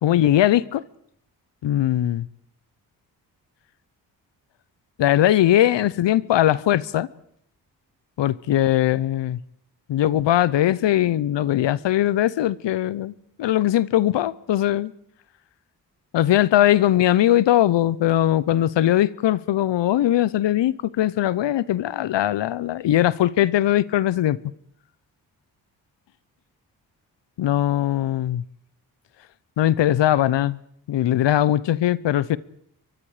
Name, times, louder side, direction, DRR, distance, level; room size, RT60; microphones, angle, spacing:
voice 1, 0.0-0.8 1.6-2.2 5.0-7.1 8.2-9.4 9.9-14.9 16.1-24.4 27.4-28.4 29.6-30.6 30.9-32.4, left 12 dB, 75° left, 0.8 m, -20 dB
29.0 x 23.0 x 4.9 m
supercardioid pair, 45°, 43 cm